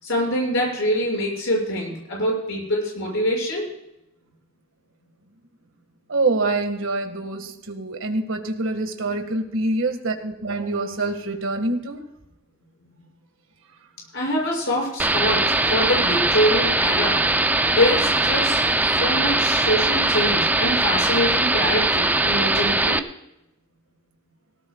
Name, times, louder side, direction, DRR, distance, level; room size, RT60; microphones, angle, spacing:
voice 1, 0.0-3.7 14.1-17.2 17.6-23.0, left 1 dB, 70° left, -2 dB, 6.7 m, -24 dB
voice 2, 6.1-12.0, right 2 dB, 70° right, 5 dB, 1.8 m, -25 dB
sound 1, 15.0-23.0, right 2 dB, 10° right, 0.5 m, -20 dB
19.0 x 17.5 x 2.4 m, 0.85 s
head